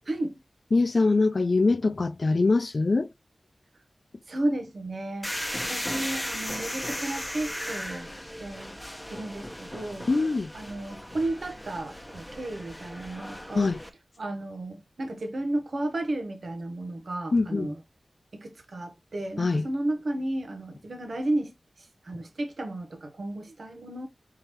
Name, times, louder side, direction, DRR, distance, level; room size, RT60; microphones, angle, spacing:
voice 1, 0.0-0.4 4.3-5.3 5.7-8.8 9.1-10.1 10.5-13.7 14.2-17.8 18.3-24.1, right 1 dB, 70° right, 1.0 m, -33 dB
voice 2, 0.7-3.1 10.1-10.5 13.5-13.8 17.3-17.7 19.4-19.7, left 3 dB, 55° left, 0.4 m, -23 dB
sound 1, 5.2-13.9, equal, 5° left, 0.9 m, -36 dB
4.7 x 3.8 x 2.9 m
wide cardioid pair, 60°, 0 cm